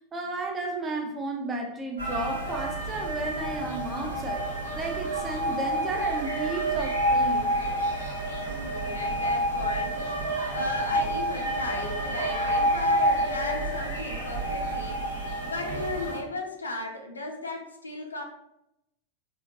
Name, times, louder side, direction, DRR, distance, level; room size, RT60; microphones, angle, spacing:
voice 1, 0.0-4.5 4.7-7.5, right 2 dB, 20° right, 3 dB, 0.5 m, -33 dB
sound 1, 2.0-16.2, right 1 dB, 70° right, 1.0 m, -28 dB
voice 2, 8.6-18.2, left 2 dB, 80° left, 2 dB, 0.5 m, -36 dB
3.5 x 2.2 x 2.8 m, 0.83 s
figure-of-eight pair, 90°, 0 cm